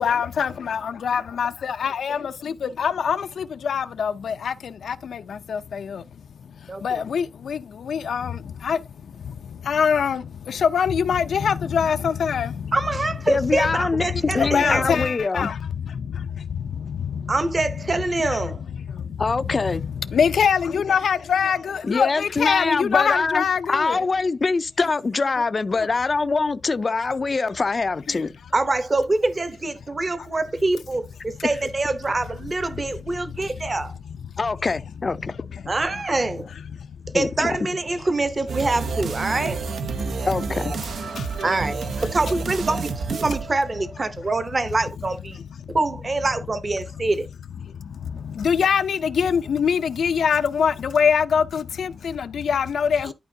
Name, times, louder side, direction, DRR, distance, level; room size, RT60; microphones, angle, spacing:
voice 1, 0.0-17.7 17.9-24.1 24.8-24.9 25.7-25.9 28.1-28.2 30.2-30.3 32.7-33.7 34.0-34.5 35.1-37.2 37.9-38.1 39.4-39.5 39.9-40.3 40.8-41.5 41.9-42.1 44.2-44.3 45.0-45.8 46.3-46.4 46.9-47.1 47.6-53.1, left 7 dB, 85° left, 0.5 m, -25 dB
voice 2, 12.7-14.8 17.3-18.6 28.5-34.0 35.7-36.5 37.1-39.6 41.4-41.8 42.1-45.4 45.7-47.3, right 2 dB, 30° right, 0.8 m, -25 dB
voice 3, 13.3-15.5 19.2-19.8 21.8-28.3 34.4-35.3 37.1-37.5 40.2-40.7, left 4 dB, 35° left, 0.4 m, -24 dB
sound 1, 38.5-44.2, right 4 dB, 80° right, 0.7 m, -29 dB
11.5 x 4.5 x 2.7 m
wide cardioid pair, 155°, 0 cm